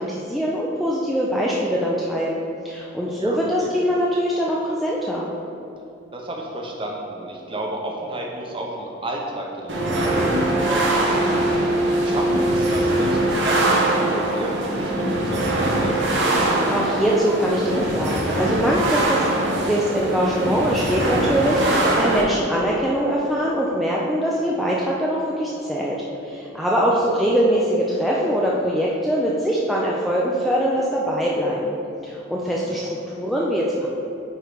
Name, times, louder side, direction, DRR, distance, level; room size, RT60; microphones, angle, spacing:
voice 1, 0.0-5.3 16.5-26.0 26.2-31.8 32.0-33.9, equal, ahead, -5 dB, 0.4 m, -23 dB
voice 2, 3.1-3.7 6.1-11.6 12.0-16.2 26.8-27.2 32.7-32.8, right 1 dB, 25° right, -1 dB, 0.9 m, -33 dB
sound 1, 9.7-22.2, right 1 dB, 65° right, 1.1 m, -22 dB
9.1 x 3.3 x 5.0 m, 2.8 s
head